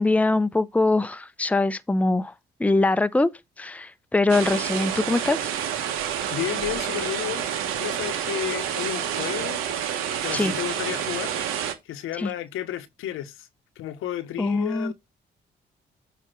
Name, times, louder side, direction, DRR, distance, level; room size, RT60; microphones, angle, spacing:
voice 1, 0.0-2.3 2.6-3.3 3.6-5.5 10.3-10.5 12.2-12.3 14.4-14.9, left 2 dB, 5° left, 0.6 m, -23 dB
sound 1, 4.3-11.7, right 9 dB, 90° right, 1.1 m, -28 dB
voice 2, 6.3-7.5 7.8-9.6 10.2-11.3 11.8-13.5 13.8-14.9, left 12 dB, 80° left, 1.0 m, -32 dB
8.0 x 2.9 x 5.9 m
supercardioid pair, 55°, 21 cm